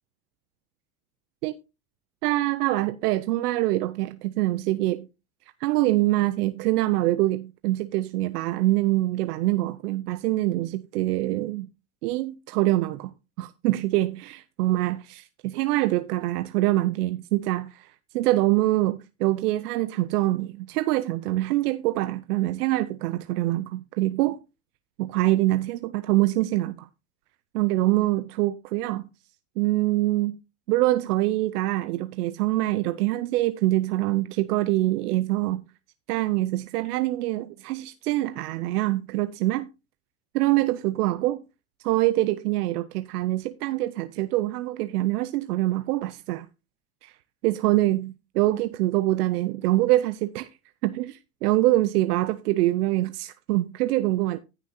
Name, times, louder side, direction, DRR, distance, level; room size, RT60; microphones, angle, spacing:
voice 1, 2.2-5.1 5.6-11.7 12.0-13.1 13.4-24.4 25.0-26.9 27.5-29.1 29.6-30.4 30.7-35.6 36.1-39.7 40.3-41.4 41.8-46.5 47.0-47.1 47.4-50.5 50.8-54.4, right 17 dB, 90° right, 0.7 m, -24 dB
15.0 x 6.1 x 2.7 m
supercardioid pair, 95°, 45 cm